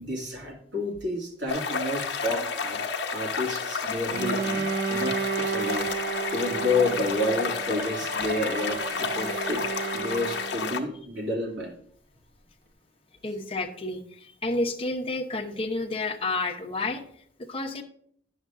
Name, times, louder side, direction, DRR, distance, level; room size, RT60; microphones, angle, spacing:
voice 1, 0.0-2.8 3.1-5.9 6.3-11.8, left 2 dB, 80° right, -1 dB, 2.2 m, -30 dB
sound 1, 1.5-10.8, left 5 dB, 65° left, 0.8 m, -31 dB
Bowed string instrument, 4.1-10.9, right 6 dB, 55° right, 0.7 m, -32 dB
voice 2, 13.2-17.8, left 2 dB, 30° left, 4 dB, 0.8 m, -31 dB
10.0 x 6.4 x 2.5 m, 0.63 s
head